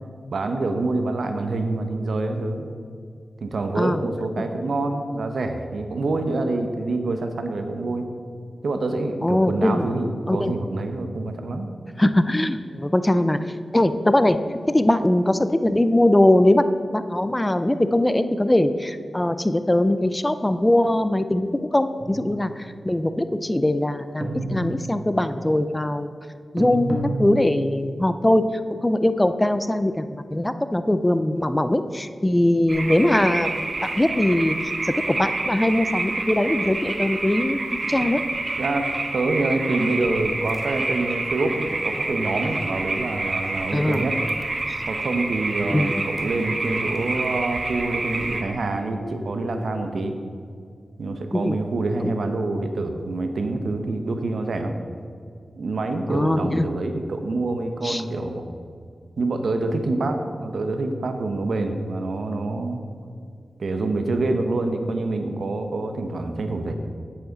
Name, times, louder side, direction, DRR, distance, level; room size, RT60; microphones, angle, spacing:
voice 1, 0.3-2.7 3.4-8.1 8.6-11.7 38.0-38.1 38.6-44.2 44.9-50.2 51.0-54.7 55.6-58.5 59.2-62.8 63.6-66.7, right 2 dB, 80° right, 6 dB, 0.8 m, -26 dB
voice 2, 9.2-9.9 10.3-10.5 12.0-13.4 13.7-14.4 14.7-16.7 16.9-26.1 26.5-28.5 28.8-37.6 37.9-38.2 43.7-44.0 45.7-46.0 51.3-51.6 52.0-52.1 56.1-56.7 57.8-58.0, left 1 dB, 20° left, 11 dB, 0.5 m, -21 dB
sound 1, 22.0-22.6 24.2-25.2 26.6-27.9, right 1 dB, 40° right, 1.7 m, -30 dB
sound 2, 32.7-48.4, right 2 dB, 60° right, 1.1 m, -28 dB
9.5 x 8.8 x 4.0 m, 2.3 s
cardioid pair, 55°, 0 cm